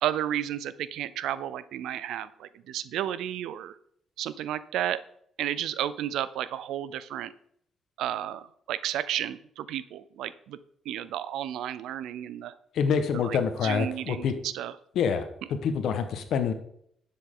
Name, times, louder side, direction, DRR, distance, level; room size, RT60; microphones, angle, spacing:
voice 1, 0.0-3.8 4.2-5.0 5.4-7.3 8.0-10.6 10.9-12.5 13.2-14.7, right 11 dB, 85° right, 16 dB, 0.5 m, -32 dB
voice 2, 12.7-14.3 14.9-16.5, left 6 dB, 75° left, 8 dB, 1.3 m, -26 dB
11.0 x 7.5 x 3.8 m, 0.68 s
cardioid pair, 90°, 0 cm